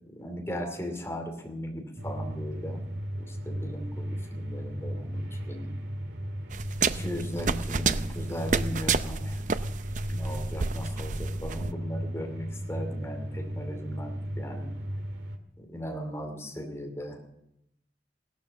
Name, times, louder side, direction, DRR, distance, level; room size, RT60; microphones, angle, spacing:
voice 1, 0.2-2.8 3.2-5.7 6.8-9.4 10.1-14.7 15.6-17.3, equal, 15° left, 3 dB, 2.7 m, -37 dB
sound 1, 2.0-15.4, equal, 80° right, 1.9 m, -35 dB
sound 2, 6.5-11.7, right 5 dB, 45° right, 0.5 m, -30 dB
16.5 x 12.0 x 7.1 m, 0.82 s
head